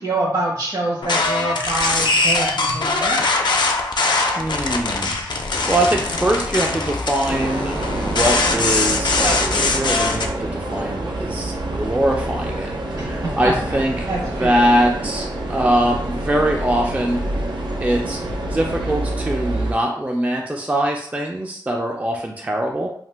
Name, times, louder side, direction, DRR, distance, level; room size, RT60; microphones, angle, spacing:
voice 1, 0.0-3.2 13.2-13.8 14.1-14.6 14.9-15.0, right 2 dB, 65° right, -4 dB, 1.2 m, -25 dB
sound 1, 1.0-10.3, left 3 dB, 75° left, 0.4 m, -21 dB
voice 2, 4.3-5.1 5.7-17.2 17.8-22.9, right 1 dB, 20° right, 1 dB, 0.4 m, -22 dB
sound 2, 7.3-19.7, right 1 dB, 85° right, 0.4 m, -27 dB
2.8 x 2.0 x 3.3 m, 0.63 s
wide cardioid pair, 60°, 8 cm